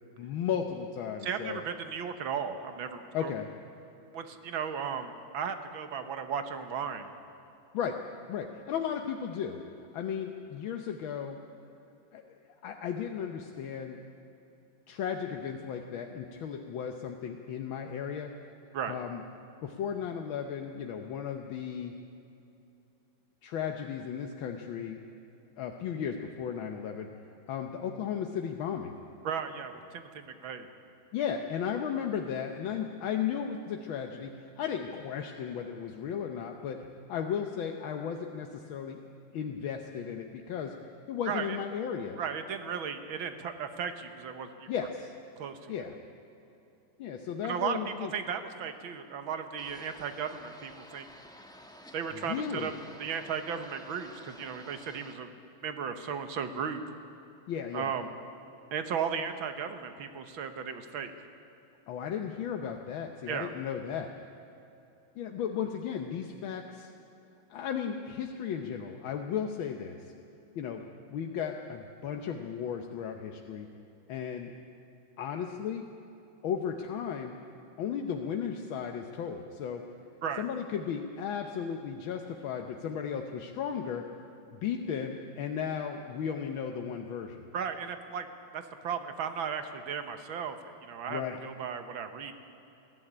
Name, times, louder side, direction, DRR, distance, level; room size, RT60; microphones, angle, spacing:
voice 1, 0.2-1.6 3.1-3.5 7.7-8.0 8.3-9.6 9.9-11.4 12.1-12.2 12.6-14.0 14.9-18.3 18.9-19.2 19.6-21.9 23.4-25.0 25.6-27.1 27.5-29.0 31.1-36.8 37.1-39.0 39.3-40.7 41.1-42.2 44.7-45.1 45.7-45.9 47.0-48.1 52.1-52.7 57.5-57.9 61.9-64.1 65.2-66.9 67.5-70.0 70.5-73.7 74.1-74.5 75.2-75.9 76.4-77.4 77.8-79.8 80.4-84.0 84.5-87.4 91.1-91.4, left 8 dB, 80° left, 3 dB, 1.7 m, -35 dB
voice 2, 1.2-3.3 4.1-7.1 18.7-19.0 29.2-30.7 41.3-41.6 42.2-44.7 45.4-45.6 47.4-51.1 51.9-52.7 53.0-55.3 55.6-56.8 57.7-58.1 58.7-61.1 63.3-63.5 80.2-80.4 87.5-88.3 88.5-92.3, right 7 dB, 80° right, 8 dB, 2.0 m, -35 dB
sound 1, 49.6-55.1, equal, 5° left, 0.8 m, -52 dB
21.0 x 14.5 x 10.0 m, 2.8 s
omnidirectional pair, 2.2 m